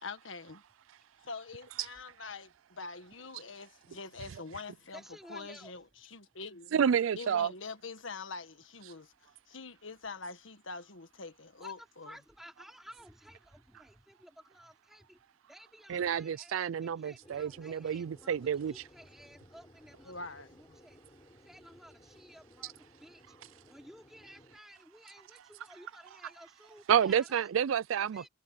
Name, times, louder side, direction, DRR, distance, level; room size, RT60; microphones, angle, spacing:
voice 1, 0.0-0.6 1.2-6.8 7.1-12.2 19.9-20.8, left 4 dB, 70° left, 1.6 m, -45 dB
voice 2, 4.9-5.7 11.6-11.7 12.0-15.2 15.5-20.1 20.6-21.0 21.4-22.7 23.0-23.2 23.7-27.3 28.0-28.3, equal, ahead, 4.3 m, -54 dB
voice 3, 6.7-7.5 15.9-18.8 26.9-28.3, right 8 dB, 80° right, 0.4 m, -29 dB
sound 1, 17.2-24.6, left 1 dB, 20° left, 7.5 m, -59 dB
head